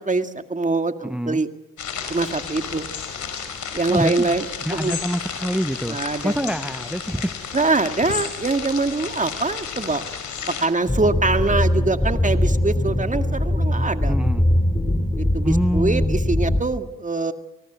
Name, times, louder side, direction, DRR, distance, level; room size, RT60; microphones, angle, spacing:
voice 1, 0.0-1.5 2.1-2.9 3.7-4.4 4.7-5.0 5.9-6.5 7.5-10.0 10.5-14.2 15.2-17.3, right 3 dB, 25° right, 8 dB, 2.0 m, -23 dB
voice 2, 1.0-1.4 3.9-4.3 4.7-7.6 14.1-14.5 15.4-16.2, equal, 5° right, 13 dB, 0.8 m, -26 dB
sound 1, 1.8-10.7, left 6 dB, 70° left, 5.3 m, -32 dB
sound 2, 10.9-16.6, left 1 dB, 15° left, 3.5 m, -21 dB
28.5 x 19.5 x 8.1 m, 1.0 s
supercardioid pair, 55°, 31 cm